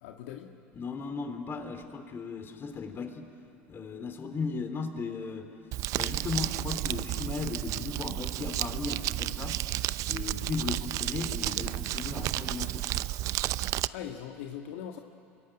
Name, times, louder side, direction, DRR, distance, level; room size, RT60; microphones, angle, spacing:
voice 1, 0.0-0.5 13.9-15.0, left 9 dB, 75° left, 3 dB, 1.7 m, -40 dB
voice 2, 0.7-3.3 3.7-5.5 5.9-9.6 10.1-12.9, left 4 dB, 35° left, 7 dB, 3.6 m, -36 dB
Crumpling crinkling, 5.7-13.9, right 15 dB, 55° right, 0.6 m, -32 dB
27.5 x 23.0 x 9.1 m, 2.6 s
hypercardioid pair, 85°, 7 cm